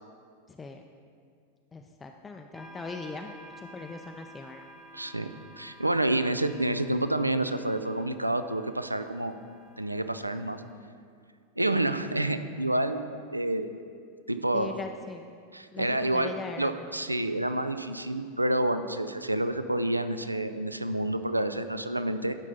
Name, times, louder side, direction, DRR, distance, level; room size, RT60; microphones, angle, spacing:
voice 1, 0.5-0.9 1.7-4.7 14.5-15.3 15.7-16.7, left 4 dB, 15° left, 4 dB, 0.4 m, -40 dB
sound 1, 2.5-10.7, right 1 dB, 15° right, 1.1 m, -52 dB
voice 2, 4.9-5.3 5.6-9.3 9.8-10.6 11.6-13.7 14.3-14.8 15.5-22.4, right 1 dB, 85° right, 10 dB, 0.3 m, -28 dB
12.0 x 5.3 x 3.9 m, 2.2 s
figure-of-eight pair, 90°, 0 cm